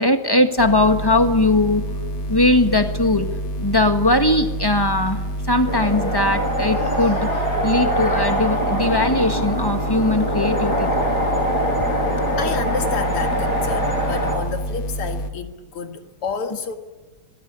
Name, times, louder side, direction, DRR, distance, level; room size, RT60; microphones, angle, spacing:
voice 1, 0.0-1.8 2.3-3.3 3.6-11.1 12.2-12.3, left 2 dB, 10° left, 7 dB, 1.5 m, -20 dB
sound 1, 0.6-15.3, right 1 dB, 65° left, 3.1 m, -28 dB
sound 2, 5.7-14.4, equal, 45° left, 6.7 m, -23 dB
voice 2, 12.4-16.8, left 6 dB, 80° left, 6 dB, 2.7 m, -29 dB
26.5 x 22.5 x 9.8 m, 1.2 s
omnidirectional pair, 2.4 m